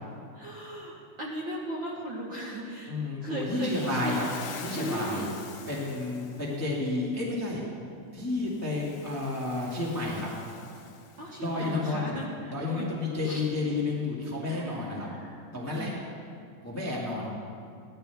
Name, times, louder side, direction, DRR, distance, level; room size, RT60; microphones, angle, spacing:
voice 1, 0.3-4.2 4.8-5.3 11.2-12.9 13.2-13.6 14.5-16.0, right 1 dB, 65° right, -4 dB, 1.2 m, -37 dB
voice 2, 2.9-4.2 4.6-5.3 5.7-7.6 8.1-10.3 11.4-12.2 12.5-15.1 15.5-15.9 16.6-17.3, left 2 dB, 10° left, -4 dB, 0.7 m, -31 dB
Waves surf, 3.5-6.7 8.5-11.6, left 6 dB, 70° left, 2.1 m, -45 dB
16.0 x 11.5 x 3.5 m, 2.4 s
omnidirectional pair, 3.8 m